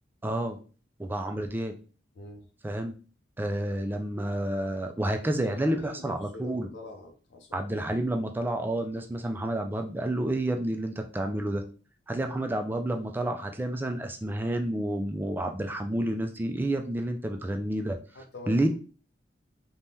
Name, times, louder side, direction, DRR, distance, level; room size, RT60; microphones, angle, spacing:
voice 1, 0.2-0.6 1.0-1.7 2.6-2.9 3.4-6.7 7.5-11.6 12.1-18.0 18.5-18.7, right 1 dB, 10° right, 4 dB, 0.3 m, -29 dB
voice 2, 2.2-2.5 5.4-7.7 18.1-18.7, left 2 dB, 80° left, 2 dB, 0.5 m, -44 dB
3.4 x 2.2 x 2.7 m, 0.39 s
head